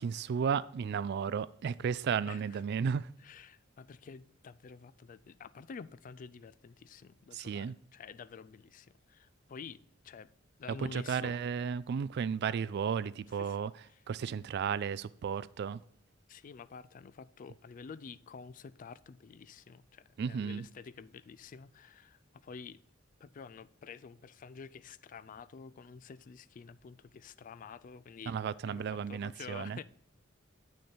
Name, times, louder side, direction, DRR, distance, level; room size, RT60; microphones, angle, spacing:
voice 1, 0.0-3.1 7.3-7.7 10.8-13.7 14.1-15.8 20.2-20.6 28.3-29.8, right 6 dB, 55° right, 0.3 m, -34 dB
voice 2, 2.3-2.6 3.2-10.3 10.6-11.4 13.3-13.6 13.8-14.0 16.3-22.8 23.2-28.4 28.6-29.8, left 5 dB, 40° left, 0.3 m, -49 dB
8.2 x 6.4 x 4.4 m
head